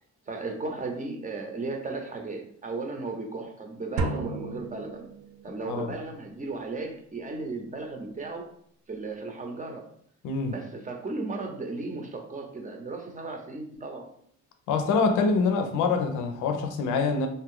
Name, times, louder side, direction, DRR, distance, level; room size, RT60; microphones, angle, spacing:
voice 1, 0.3-5.1 5.4-8.5 8.9-9.9 10.5-14.1, right 3 dB, 25° right, 3 dB, 0.7 m, -35 dB
sound 1, 4.0-5.7, right 3 dB, 85° right, 0.5 m, -33 dB
voice 2, 10.2-10.6 14.7-17.3, left 4 dB, 85° left, 5 dB, 0.6 m, -25 dB
2.6 x 2.4 x 3.6 m, 0.65 s
cardioid pair, 90°, 30 cm